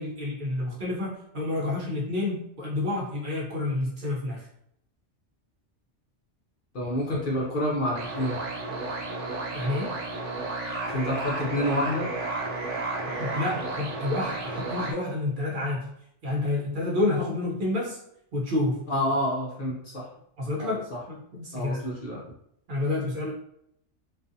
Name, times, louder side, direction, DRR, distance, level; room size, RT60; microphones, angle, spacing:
voice 1, 0.0-4.4 9.5-9.9 13.1-15.9 16.2-18.0 18.3-18.8 20.4-21.8 22.7-23.3, left 2 dB, 55° right, -4 dB, 0.7 m, -29 dB
voice 2, 6.7-8.4 10.9-12.1 18.9-20.1 20.6-21.0 21.5-22.2, left 1 dB, 55° left, -3 dB, 0.6 m, -28 dB
sound 1, 7.9-14.9, right 2 dB, 85° right, 1.0 m, -32 dB
2.4 x 2.4 x 2.6 m, 0.73 s
omnidirectional pair, 1.2 m